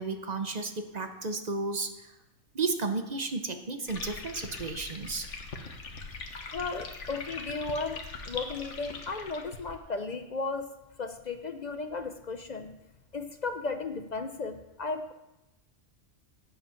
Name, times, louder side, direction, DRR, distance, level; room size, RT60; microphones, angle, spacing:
voice 1, 0.0-2.1 2.5-5.3, right 3 dB, 40° right, 7 dB, 0.9 m, -33 dB
sound 1, 3.9-9.8, left 4 dB, 70° left, 1.5 m, -41 dB
voice 2, 6.5-10.7 11.0-12.8 13.1-15.1, left 3 dB, 45° left, 8 dB, 0.6 m, -35 dB
10.0 x 8.2 x 5.8 m, 0.93 s
omnidirectional pair, 1.3 m